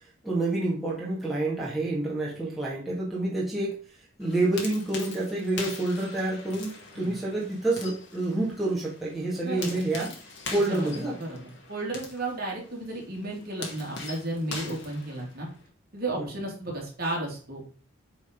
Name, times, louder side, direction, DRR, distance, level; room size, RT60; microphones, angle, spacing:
voice 1, 0.2-3.8 4.2-10.1 10.5-11.2 16.2-16.3, right 2 dB, ahead, -7 dB, 2.0 m, -28 dB
sound 1, 4.2-15.7, left 3 dB, 55° left, 1.9 m, -42 dB
voice 2, 9.4-9.8 10.7-15.5 15.9-17.6, right 2 dB, 45° right, -2 dB, 2.8 m, -33 dB
8.2 x 4.1 x 5.2 m, 0.39 s
head